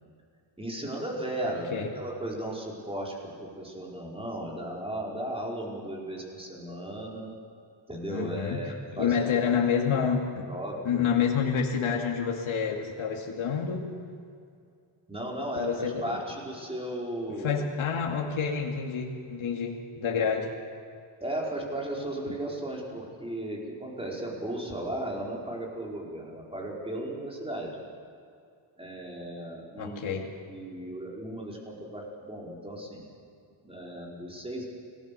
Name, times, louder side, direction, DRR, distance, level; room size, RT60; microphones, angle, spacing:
voice 1, 0.6-7.3 7.9-9.2 10.5-11.1 15.1-17.6 20.1-20.2 21.2-27.8 28.8-30.2 30.5-33.1 33.6-34.7, right 1 dB, 10° right, -2 dB, 5.0 m, -36 dB
voice 2, 8.1-8.6 8.9-10.5 10.8-13.9 15.6-16.2 17.4-20.5 22.3-22.4 29.8-30.3, left 6 dB, 70° left, 0 dB, 2.6 m, -28 dB
29.5 x 20.0 x 7.0 m, 2.4 s
wide cardioid pair, 145°, 50 cm